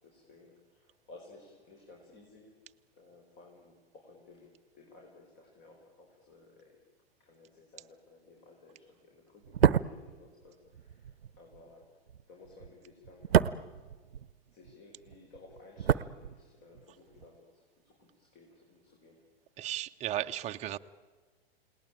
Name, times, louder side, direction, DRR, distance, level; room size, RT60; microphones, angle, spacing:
voice 1, 0.0-2.6 3.0-6.8 7.2-11.9 12.3-13.4 14.5-19.2, left 3 dB, 35° left, 1 dB, 5.2 m, -57 dB
sound 1, 9.4-14.7 15.0-16.8 17.1-17.3, right 8 dB, 70° right, 0.8 m, -30 dB
voice 2, 19.6-20.8, right 13 dB, 20° right, 7 dB, 0.8 m, -35 dB
30.0 x 19.0 x 8.9 m, 1.4 s
figure-of-eight pair, 100°, 31 cm